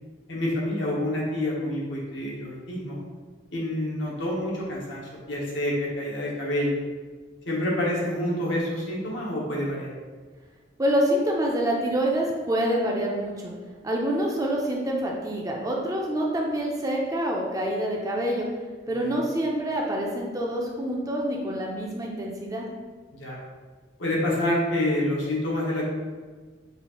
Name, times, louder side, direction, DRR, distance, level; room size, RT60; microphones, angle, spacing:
voice 1, 0.3-3.0 3.5-6.8 7.4-9.9 19.0-19.2 23.1-23.4 24.0-25.9, left 1 dB, 80° left, -4 dB, 1.1 m, -27 dB
voice 2, 10.8-13.5 13.8-18.5 18.9-22.7, equal, 20° right, -1 dB, 0.4 m, -26 dB
5.4 x 2.5 x 2.9 m, 1.4 s
head